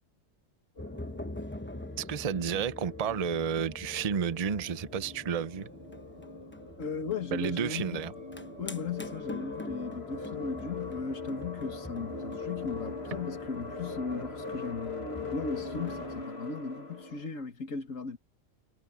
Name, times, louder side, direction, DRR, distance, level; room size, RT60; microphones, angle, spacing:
sound 1, 0.8-17.3, left 4 dB, 50° left, 2.7 m, -42 dB
sound 2, 0.8-16.2, left 1 dB, 10° left, 0.9 m, -45 dB
voice 1, 2.0-5.7 7.3-8.1, right 7 dB, 35° right, 0.7 m, -31 dB
voice 2, 6.8-8.1 8.6-18.2, left 5 dB, 70° left, 2.2 m, -37 dB
omnidirectional pair, 1.4 m